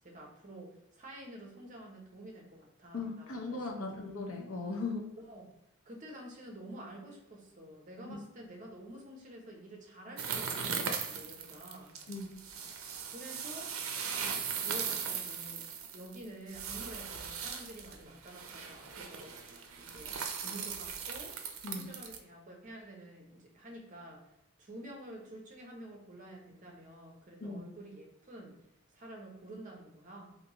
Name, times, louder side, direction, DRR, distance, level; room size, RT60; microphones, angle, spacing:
voice 1, 0.0-4.0 5.2-5.5 5.9-11.9 13.1-13.7 14.6-15.7 15.9-19.3 19.8-21.4 21.7-24.3 24.6-28.6 28.9-30.4, right 1 dB, 35° right, 0 dB, 0.7 m, -49 dB
voice 2, 2.9-5.1 8.0-8.2 12.1-12.3 21.6-21.9 27.4-27.6, left 3 dB, 85° left, 2 dB, 0.7 m, -38 dB
sound 1, 10.2-22.2, right 6 dB, 75° right, 0.5 m, -39 dB
3.4 x 2.6 x 2.9 m, 0.88 s
head